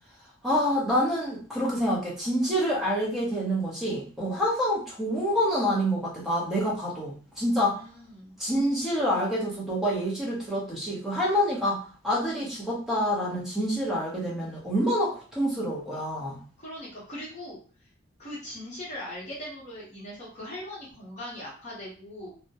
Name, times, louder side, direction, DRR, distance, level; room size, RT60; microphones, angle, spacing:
voice 1, 0.4-7.8 8.4-16.4, equal, ahead, -6 dB, 0.7 m, -27 dB
voice 2, 7.6-8.4 16.6-17.6 18.2-22.3, left 1 dB, 35° left, -7 dB, 0.8 m, -40 dB
2.2 x 2.1 x 2.7 m, 0.41 s
head